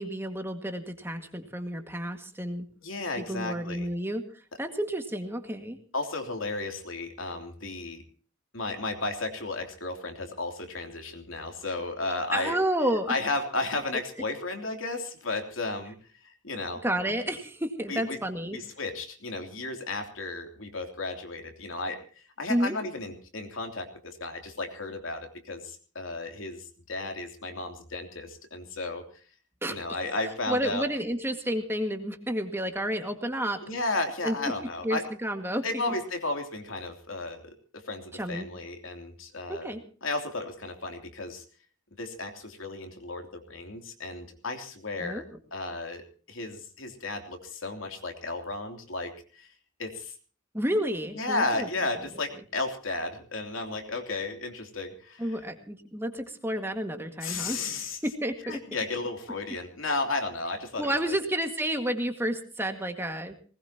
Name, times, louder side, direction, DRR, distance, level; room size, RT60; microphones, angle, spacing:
voice 1, 0.0-2.7 3.3-4.2 4.6-5.8 12.3-13.2 16.8-18.6 22.5-22.8 29.6-29.8 30.5-33.6 34.2-34.4 34.8-35.6 38.1-38.5 39.5-39.8 45.0-45.2 50.5-51.7 55.2-58.6 60.8-63.4, right 1 dB, 10° right, 5 dB, 1.9 m, -30 dB
voice 2, 2.8-3.9 5.9-8.0 8.5-12.6 13.1-15.9 16.2-16.8 17.9-18.2 18.5-29.0 29.7-30.8 33.6-35.0 35.6-39.7 40.0-41.4 42.0-45.2 45.5-46.0 46.3-49.5 49.8-50.1 51.1-55.3 57.2-58.0 58.5-61.2, left 2 dB, 70° left, 5 dB, 3.2 m, -34 dB
20.0 x 20.0 x 2.9 m, 0.41 s
head